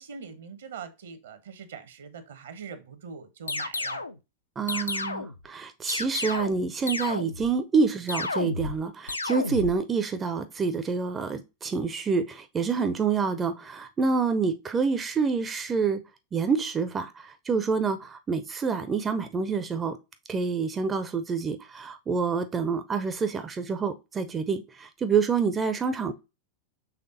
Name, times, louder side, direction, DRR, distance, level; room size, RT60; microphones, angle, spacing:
voice 1, 0.0-4.0, right 6 dB, 65° right, 0.8 m, -42 dB
sound 1, 3.5-4.2 4.7-5.4 5.9-6.6 6.9-7.5 8.1-8.8 9.1-9.8, left 3 dB, 80° left, 0.3 m, -31 dB
voice 2, 4.6-16.0 16.3-20.0 20.3-26.1, right 5 dB, 20° right, 0.4 m, -27 dB
5.7 x 3.3 x 2.6 m
figure-of-eight pair, 90°, 0 cm